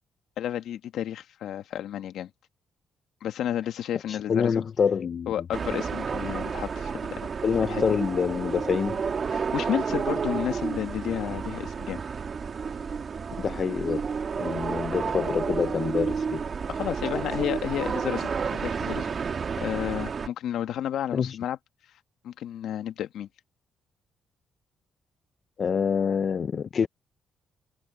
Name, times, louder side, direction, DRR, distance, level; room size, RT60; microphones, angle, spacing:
voice 1, 0.4-2.3 3.2-4.6 5.3-7.2 7.6-8.0 9.3-12.0 16.7-19.1 19.6-21.6 22.2-23.3, left 11 dB, 75° left, 1.6 m, -31 dB
voice 2, 4.1-5.3 7.4-9.0 13.4-14.0 14.4-16.4 21.1-21.4 25.6-26.9, left 6 dB, 50° left, 0.8 m, -26 dB
sound 1, 5.5-20.3, right 6 dB, 45° right, 2.0 m, -31 dB
cardioid pair, 90°, 0 cm